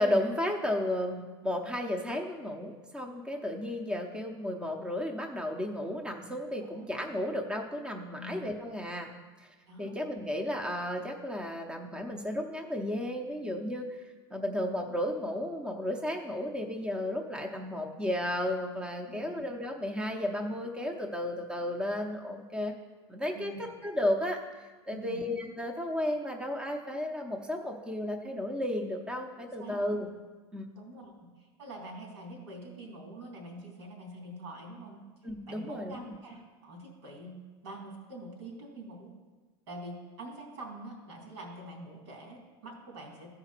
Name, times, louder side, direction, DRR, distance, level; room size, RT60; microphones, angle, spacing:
voice 1, 0.0-9.1 9.4-9.5 9.8-14.0 14.3-22.7 23.1-30.1 30.5-30.7 35.2-36.0, left 1 dB, 5° right, 2 dB, 0.7 m, -33 dB
voice 2, 6.6-6.9 8.1-8.4 9.7-9.9 19.1-19.4 23.3-23.6 24.9-25.2 29.4-29.8 30.7-35.0 35.5-37.4 37.6-39.1 39.7-43.4, right 1 dB, 90° right, -1 dB, 3.2 m, -45 dB
14.0 x 4.9 x 4.4 m, 1.3 s
supercardioid pair, 135°, 14 cm